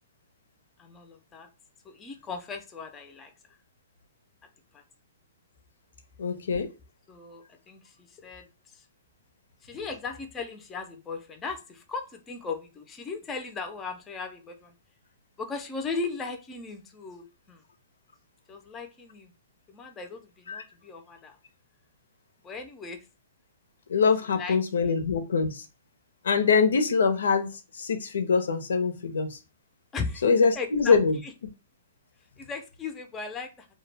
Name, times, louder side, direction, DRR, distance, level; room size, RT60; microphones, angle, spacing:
voice 1, 0.8-1.5 1.9-3.6 4.7-4.8 7.1-8.5 8.7-8.8 9.6-14.7 15.4-17.6 18.5-19.3 19.7-21.4 22.4-23.1 24.3-24.9 29.9-30.3 30.5-31.3 32.4-33.7, left 4 dB, 15° left, 0.3 m, -37 dB
voice 2, 6.2-6.7 20.5-20.6 23.9-25.6 26.2-27.5 27.8-29.4 30.2-31.2, left 5 dB, 85° left, 0.5 m, -23 dB
2.2 x 2.0 x 3.2 m
hypercardioid pair, 155°, 0 cm